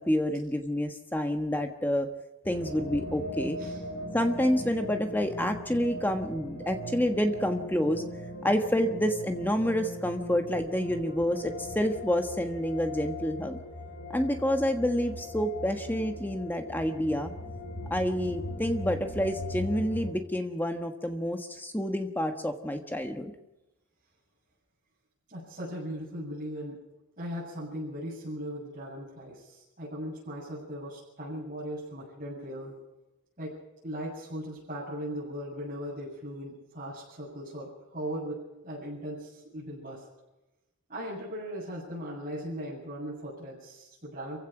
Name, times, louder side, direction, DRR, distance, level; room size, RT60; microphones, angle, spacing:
voice 1, 0.0-2.1 2.4-3.6 4.1-8.0 8.4-13.6 14.1-17.3 17.9-23.3, equal, 10° left, 5 dB, 1.3 m, -28 dB
sound 1, 2.4-20.1, left 1 dB, 50° left, 6.1 m, -39 dB
voice 2, 25.3-26.8 27.2-32.8 33.4-33.5 33.8-40.0 40.9-44.4, equal, 35° right, -9 dB, 7.7 m, -38 dB
27.5 x 16.0 x 6.1 m, 0.98 s
head